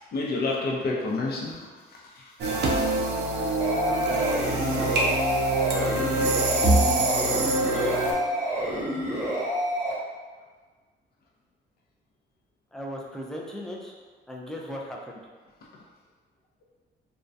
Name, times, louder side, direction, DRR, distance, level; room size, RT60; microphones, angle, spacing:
voice 1, 0.1-2.8 7.7-7.8, left 3 dB, 55° left, -2 dB, 0.6 m, -30 dB
sound 1, 2.4-8.1, right 2 dB, 60° right, 0.5 m, -25 dB
sound 2, 3.6-9.9, equal, 15° right, 0.9 m, -28 dB
voice 2, 3.9-5.1 5.7-6.3 7.7-8.0 12.7-13.9 14.3-15.2, equal, 5° left, -1 dB, 0.4 m, -37 dB
2.2 x 2.1 x 2.5 m, 1.4 s
cardioid pair, 90°, 20 cm